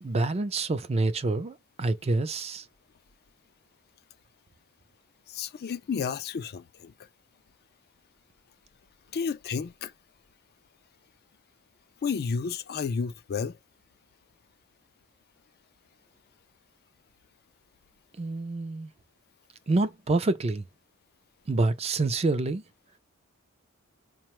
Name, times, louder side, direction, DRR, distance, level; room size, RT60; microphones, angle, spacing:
voice 1, 0.0-2.6 18.2-18.9 19.7-20.6 21.5-22.6, right 2 dB, 30° right, 0.4 m, -27 dB
voice 2, 5.3-6.9 9.1-9.9 12.0-13.6, left 5 dB, 45° left, 0.4 m, -31 dB
4.9 x 2.2 x 3.0 m
head